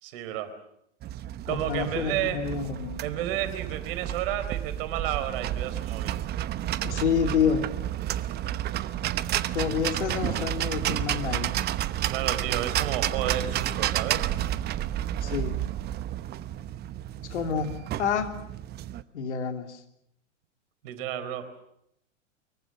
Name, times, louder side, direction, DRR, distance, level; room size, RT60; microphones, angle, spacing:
voice 1, 0.0-0.5 1.5-2.4 3.0-6.3 12.1-14.3 20.8-21.5, right 11 dB, 50° right, 10 dB, 4.1 m, -31 dB
sound 1, 1.0-19.0, right 12 dB, 25° right, 1.0 m, -31 dB
voice 2, 1.5-3.0 6.8-7.7 9.5-11.5 15.2-15.6 17.3-18.3 19.1-19.8, left 7 dB, 65° left, 5 dB, 3.2 m, -28 dB
24.5 x 22.5 x 7.6 m, 0.77 s
figure-of-eight pair, 100°, 36 cm